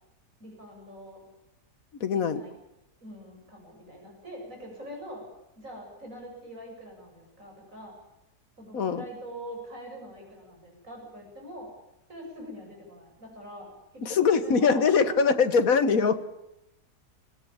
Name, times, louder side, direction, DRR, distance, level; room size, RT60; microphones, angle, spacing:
voice 1, 0.4-1.2 2.1-2.5 3.0-5.3 5.6-7.9 8.6-11.7 12.1-15.4, equal, 50° right, 0 dB, 8.4 m, -43 dB
voice 2, 2.0-2.4 8.7-9.0 14.0-16.2, left 5 dB, 55° left, 12 dB, 1.7 m, -22 dB
22.0 x 18.5 x 8.8 m, 0.90 s
omnidirectional pair, 1.8 m